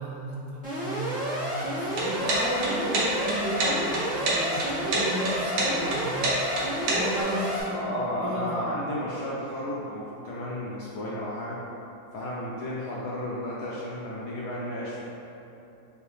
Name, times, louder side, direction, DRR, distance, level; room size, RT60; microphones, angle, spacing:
voice 1, 0.0-7.9 8.2-8.9, right 1 dB, 70° right, -5 dB, 1.1 m, -34 dB
Alarm, 0.6-7.6, equal, 10° right, 0.4 m, -30 dB
sound 1, 1.9-7.2, right 2 dB, 85° right, 1.6 m, -27 dB
voice 2, 7.7-11.6 12.1-15.1, left 1 dB, 70° left, -7 dB, 0.9 m, -33 dB
4.9 x 2.6 x 3.2 m, 2.9 s
omnidirectional pair, 2.2 m